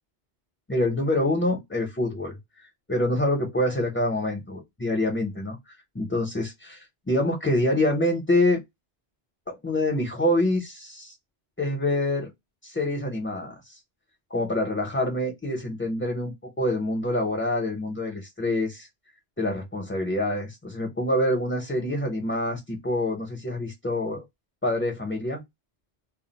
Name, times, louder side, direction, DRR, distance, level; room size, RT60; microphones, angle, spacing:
voice 1, 0.7-2.4 2.9-8.6 9.5-11.1 11.6-12.3 12.6-13.8 14.3-18.9 19.4-24.2 24.6-25.4, left 1 dB, 15° left, 0.6 m, -26 dB
2.4 x 2.1 x 3.8 m
omnidirectional pair, 1.1 m